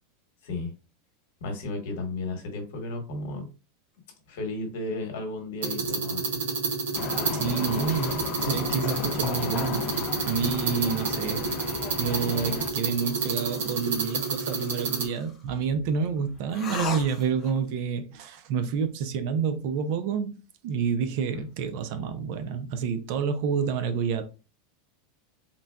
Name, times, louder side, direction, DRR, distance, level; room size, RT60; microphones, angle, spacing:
voice 1, 1.4-3.4 4.3-6.3, left 2 dB, 70° left, 1.0 m, -34 dB
sound 1, 5.6-15.1, right 4 dB, 85° right, 0.7 m, -29 dB
sound 2, 6.9-12.7, left 9 dB, 40° left, 0.3 m, -34 dB
voice 2, 7.3-9.9 10.2-11.4 12.0-20.3 20.6-24.2, right 6 dB, 55° right, 0.4 m, -29 dB
sound 3, 12.0-15.4 16.5-17.6, left 3 dB, 20° left, 0.7 m, -39 dB
3.8 x 2.1 x 2.3 m
supercardioid pair, 155°, 0 cm